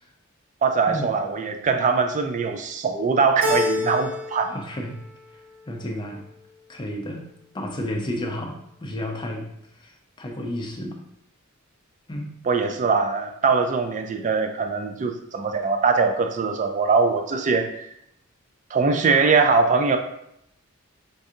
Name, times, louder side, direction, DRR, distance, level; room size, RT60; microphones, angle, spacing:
voice 1, 0.6-4.5 12.4-17.9 18.7-20.0, right 4 dB, 35° right, 6 dB, 0.3 m, -22 dB
Keyboard (musical), 3.4-4.5 4.8-5.6, left 2 dB, 60° right, 1.0 m, -27 dB
voice 2, 4.5-5.0 5.7-6.3 6.7-7.3 7.5-8.5 8.8-9.5 9.8-9.9 10.2-11.0 12.1-12.3, left 1 dB, 20° left, 2 dB, 0.5 m, -31 dB
5.2 x 2.6 x 2.4 m, 0.76 s
head